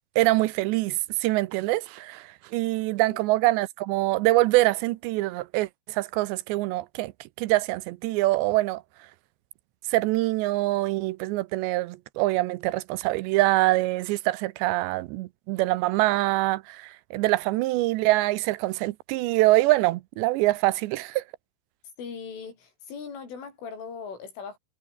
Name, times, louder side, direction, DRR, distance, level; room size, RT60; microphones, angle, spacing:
voice 1, 0.2-7.1 7.4-8.8 9.9-21.2, right 19 dB, 80° right, 2.7 m, -24 dB
voice 2, 22.0-24.6, left 5 dB, 80° left, 8.8 m, -39 dB
omnidirectional pair, 5.6 m